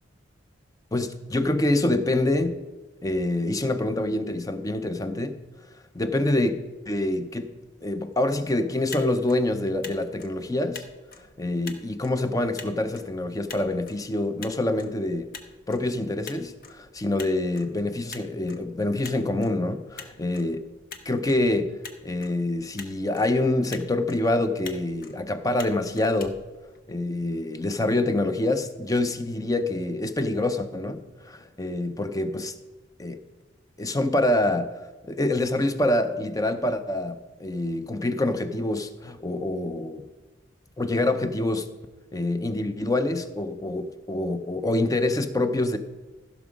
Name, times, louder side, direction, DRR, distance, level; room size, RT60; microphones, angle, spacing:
voice 1, 0.9-2.6 3.0-5.4 5.9-7.5 7.8-10.8 11.4-15.3 15.7-20.7 21.1-21.8 22.0-26.4 26.9-32.5 33.0-33.2 33.8-34.7 35.0-40.1 40.8-41.7 42.1-45.8, left 2 dB, 20° left, 9 dB, 0.5 m, -26 dB
Motor vehicle (road), 8.7-27.2, left 5 dB, 45° left, 0.8 m, -46 dB
15.0 x 6.1 x 5.0 m, 1.2 s
head